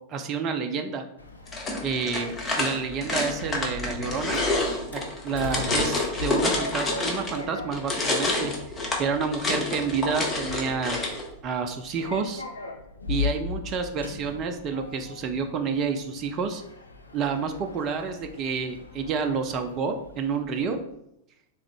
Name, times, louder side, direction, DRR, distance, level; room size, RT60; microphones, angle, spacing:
voice 1, 0.1-1.0 1.8-4.4 4.9-8.5 9.0-11.0 11.4-12.4 13.1-16.6 17.1-20.8, right 5 dB, 35° right, 5 dB, 0.4 m, -29 dB
Sliding door, 1.2-20.8, left 4 dB, 80° left, 0.4 m, -39 dB
sound 1, 1.5-7.4 7.7-11.2, left 2 dB, 20° left, 0.8 m, -28 dB
3.6 x 3.0 x 3.4 m, 0.80 s
figure-of-eight pair, 90°, 0 cm